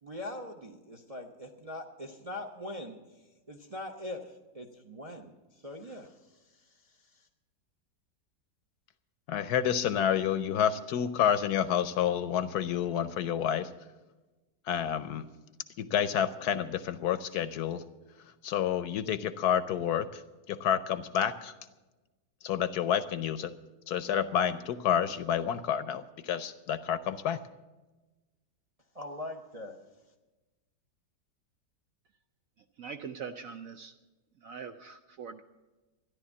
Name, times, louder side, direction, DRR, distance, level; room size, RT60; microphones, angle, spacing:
voice 1, 0.0-3.0 3.5-7.3 28.9-29.8, left 1 dB, 35° right, 4 dB, 0.6 m, -42 dB
voice 2, 9.3-13.7 14.7-15.3 15.8-17.8 18.4-20.2 20.5-21.5 22.4-23.5 23.9-27.4, left 9 dB, 70° left, 13 dB, 1.1 m, -29 dB
voice 3, 32.8-33.9 34.4-35.4, right 6 dB, 65° right, 7 dB, 0.9 m, -42 dB
13.5 x 10.5 x 7.1 m, 1.1 s
omnidirectional pair, 1.9 m